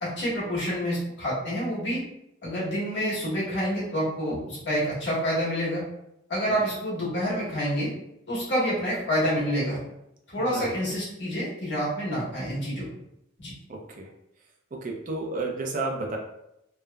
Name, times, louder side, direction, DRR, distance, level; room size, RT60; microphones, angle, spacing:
voice 1, 0.0-2.0 2.4-5.8 6.3-7.9 8.3-9.8 10.3-12.8 13.4-13.5, equal, 65° left, -7 dB, 1.4 m, -28 dB
voice 2, 10.4-10.7 13.7-14.1 14.7-16.2, right 2 dB, 40° right, 1 dB, 0.4 m, -32 dB
3.2 x 2.0 x 2.3 m, 0.82 s
head